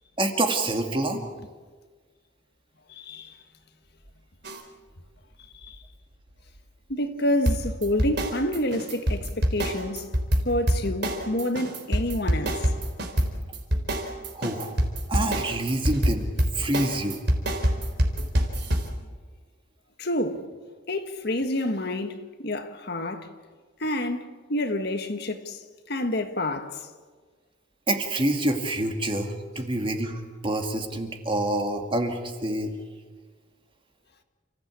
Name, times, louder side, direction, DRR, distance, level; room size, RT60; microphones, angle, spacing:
voice 1, 0.2-1.3 14.3-14.8 15.1-16.3 16.6-17.2 27.9-32.7, right 1 dB, 25° right, 2.3 m, -27 dB
voice 2, 2.9-3.3 5.6-5.7 6.9-10.1 10.5-12.6 20.0-20.4 20.9-23.3 23.8-25.6 25.9-26.8, left 1 dB, 55° left, 1.7 m, -28 dB
sound 1, 4.4-4.6 7.5-18.9, equal, 55° right, 3.9 m, -25 dB
29.5 x 15.5 x 8.5 m
head